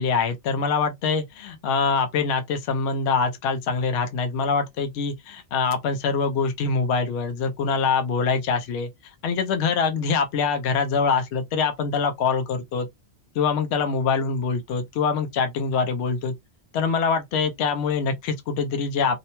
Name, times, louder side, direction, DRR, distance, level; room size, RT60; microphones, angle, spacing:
voice 1, 0.0-8.9 9.2-12.9 13.4-16.3 16.7-19.2, left 5 dB, 75° left, 0.8 m, -24 dB
2.7 x 2.1 x 2.9 m
omnidirectional pair, 1.1 m